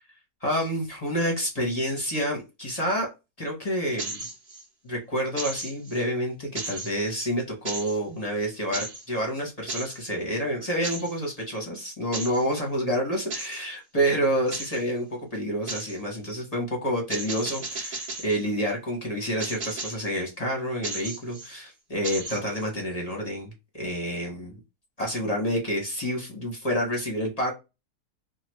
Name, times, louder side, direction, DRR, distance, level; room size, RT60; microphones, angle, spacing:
voice 1, 0.4-3.1 3.4-4.2 4.8-24.6 25.0-27.5, equal, 30° left, 0.8 m, -28 dB
sound 1, 4.0-4.6 5.4-6.0 6.6-7.2 7.7-8.0 8.7-9.1 9.7-10.0 10.8-11.2 12.1-12.4 13.3-13.6 14.5-14.8 15.7-16.0 17.1-18.4 19.4-20.1 20.8-21.5 22.0-22.7, right 3 dB, 40° right, 0.9 m, -35 dB
3.1 x 2.3 x 3.0 m
omnidirectional pair, 1.8 m